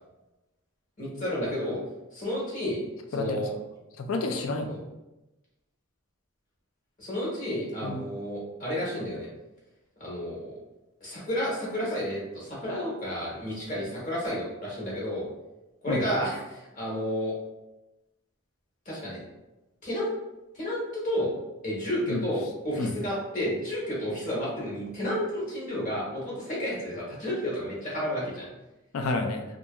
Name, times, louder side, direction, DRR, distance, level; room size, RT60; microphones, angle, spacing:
voice 1, 1.0-1.8 2.1-2.8 3.1-3.5 4.7-4.8 7.0-9.3 10.0-10.5 11.0-15.3 15.8-17.3 18.8-19.2 19.8-20.1 20.5-21.3 21.6-28.5, equal, 40° left, -6 dB, 1.1 m, -31 dB
voice 2, 4.0-4.7 7.8-8.0 15.9-16.0 22.1-22.2 22.8-22.9 28.9-29.4, left 3 dB, 75° left, 5 dB, 0.4 m, -29 dB
2.7 x 2.5 x 2.3 m, 0.99 s
head